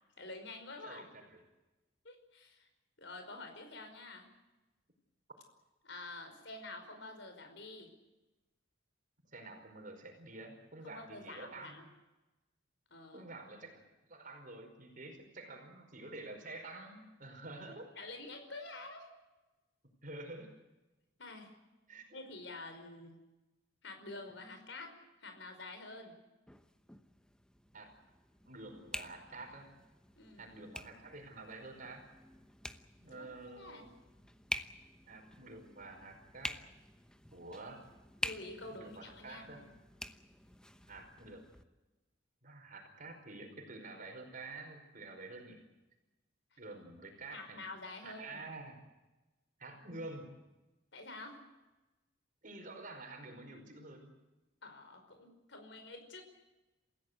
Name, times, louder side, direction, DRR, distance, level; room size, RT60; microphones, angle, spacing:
voice 1, 0.2-1.0 2.0-2.7 3.0-4.3 5.8-7.9 10.8-11.9 12.9-13.3 18.0-19.1 21.2-21.5 22.1-23.2 23.8-25.0 25.2-26.2 30.2-30.5 33.1-33.9 38.2-39.6 46.5-46.6 47.3-48.4 50.9-51.4 54.6-56.2, left 2 dB, 65° left, 7 dB, 5.3 m, -48 dB
voice 2, 0.8-1.4 9.3-11.9 13.1-13.8 14.1-17.9 20.0-20.5 21.9-22.2 27.7-27.9 28.5-29.7 30.4-32.0 33.0-33.9 35.1-36.6 37.3-37.8 38.7-39.6 40.9-41.5 42.4-45.6 46.6-47.6 48.0-48.8 49.6-50.3 52.4-54.1, right 2 dB, 45° right, 4 dB, 5.1 m, -49 dB
sound 1, 26.5-41.6, left 1 dB, 5° left, 0.9 m, -47 dB
28.5 x 16.0 x 8.2 m, 1.1 s
head